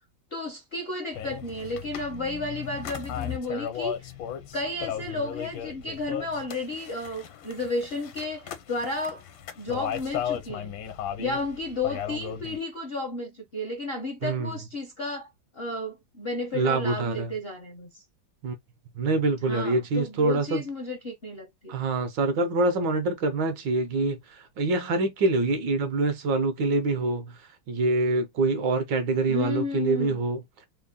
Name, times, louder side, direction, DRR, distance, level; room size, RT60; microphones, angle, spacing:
voice 1, 0.3-4.1 4.5-9.2 9.6-10.8 11.2-18.0 19.5-21.7 29.3-30.2, left 2 dB, 55° left, 0.6 m, -33 dB
sound 1, 1.1-12.6, left 9 dB, 80° left, 1.5 m, -36 dB
voice 2, 14.2-14.6 16.5-17.3 18.4-18.5 18.9-20.6 21.7-27.4 27.7-30.4, right 2 dB, 70° right, 1.4 m, -25 dB
3.6 x 2.1 x 3.5 m
omnidirectional pair, 2.2 m